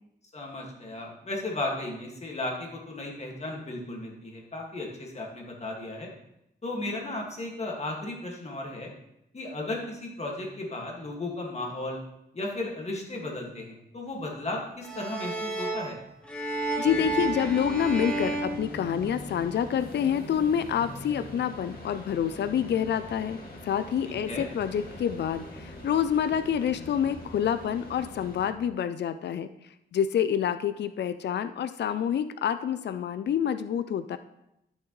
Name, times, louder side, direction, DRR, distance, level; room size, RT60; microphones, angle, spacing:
voice 1, 0.3-6.1 6.6-8.9 9.3-12.0 12.3-16.0 24.0-24.4, left 2 dB, 35° left, -1 dB, 2.0 m, -35 dB
sound 1, 14.8-19.4, right 2 dB, 5° left, 1.6 m, -32 dB
voice 2, 16.8-23.4 23.6-29.5 29.9-34.2, left 8 dB, 70° left, 11 dB, 0.4 m, -27 dB
sound 2, 16.8-28.5, left 1 dB, 55° left, 1.8 m, -42 dB
11.5 x 6.4 x 3.1 m, 0.82 s
wide cardioid pair, 115°, 18 cm